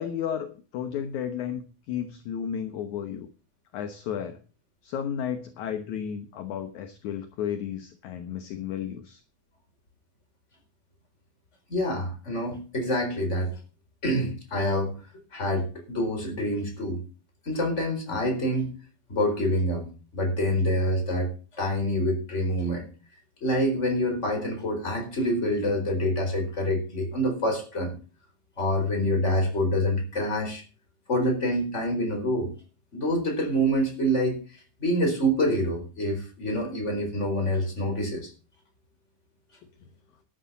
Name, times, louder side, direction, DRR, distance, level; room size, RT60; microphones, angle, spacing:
voice 1, 0.0-3.3 3.7-4.4 4.8-9.2, left 8 dB, 65° left, 8 dB, 2.2 m, -33 dB
voice 2, 11.7-13.5 14.0-14.9 15.3-17.0 17.4-18.7 19.1-19.9 20.1-21.3 21.6-22.9 23.4-27.9 28.6-30.6 31.1-32.5 32.9-34.4 34.8-38.3, equal, 20° left, 4 dB, 4.4 m, -26 dB
13.0 x 11.0 x 4.1 m, 0.35 s
omnidirectional pair, 4.2 m